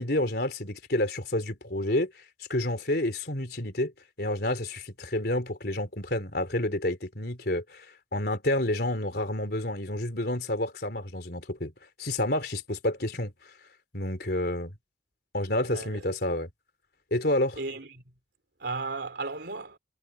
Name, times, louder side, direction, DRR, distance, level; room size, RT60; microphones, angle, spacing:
voice 1, 0.0-2.1 2.5-3.9 4.2-7.9 8.1-11.7 12.0-13.3 13.9-14.7 15.3-16.5 17.1-17.6, left 1 dB, 55° left, 4.1 m, -29 dB
voice 2, 15.7-16.0 17.6-18.0 18.6-19.8, right 3 dB, 65° right, 3.5 m, -35 dB
head